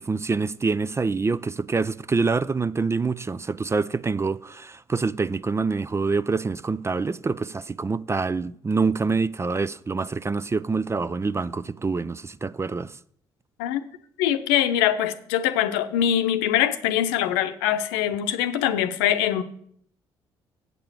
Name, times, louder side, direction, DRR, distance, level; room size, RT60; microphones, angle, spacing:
voice 1, 0.0-12.9, right 4 dB, 20° right, 0.4 m, -26 dB
voice 2, 14.2-19.4, left 11 dB, 75° left, 0.8 m, -23 dB
8.3 x 6.8 x 7.4 m
figure-of-eight pair, 45°, 12 cm